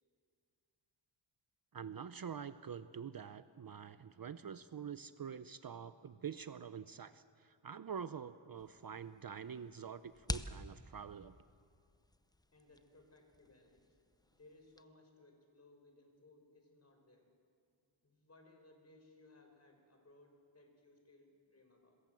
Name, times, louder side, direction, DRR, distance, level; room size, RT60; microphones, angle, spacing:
voice 1, 1.7-11.4, right 7 dB, 45° right, 13 dB, 0.6 m, -46 dB
sound 1, 8.5-14.8, left 1 dB, 10° left, 0.7 m, -49 dB
voice 2, 12.5-14.0 14.2-17.3 18.0-22.0, left 2 dB, 30° left, 3 dB, 4.7 m, -64 dB
26.5 x 21.0 x 7.7 m, 2.3 s
wide cardioid pair, 125°, 48 cm